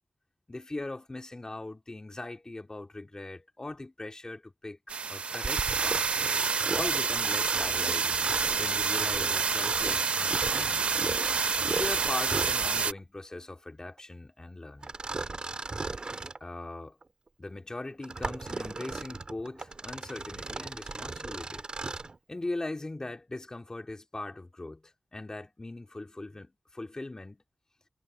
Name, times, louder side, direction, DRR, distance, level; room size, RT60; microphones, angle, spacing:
voice 1, 0.5-4.8 5.1-6.1 6.7-10.9 11.8-14.9 16.4-17.0 17.4-21.6 22.3-27.4, left 2 dB, 35° left, 3.6 m, -40 dB
sound 1, 4.9-12.9, right 5 dB, 90° right, 0.7 m, -28 dB
Mechanisms, 5.3-13.0 14.8-16.4 17.0-17.1 17.8-22.2, right 3 dB, 50° right, 2.1 m, -36 dB
cardioid pair, 55°, 2 cm